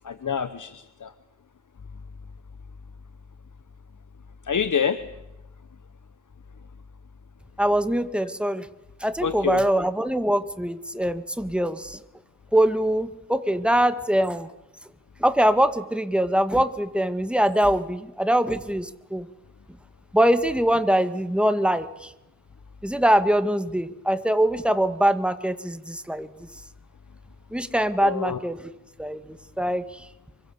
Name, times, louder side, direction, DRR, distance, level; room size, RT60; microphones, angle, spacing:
voice 1, 0.0-1.1 4.5-5.0 9.2-9.6 28.0-28.4, left 7 dB, 70° left, 12 dB, 1.1 m, -26 dB
voice 2, 7.6-8.7 9.0-12.0 12.5-14.5 15.2-19.3 20.1-22.1 22.8-26.3 27.5-28.6 29.0-30.0, right 1 dB, 5° right, 10 dB, 1.8 m, -23 dB
25.5 x 24.5 x 7.1 m, 0.96 s
wide cardioid pair, 80°, 32 cm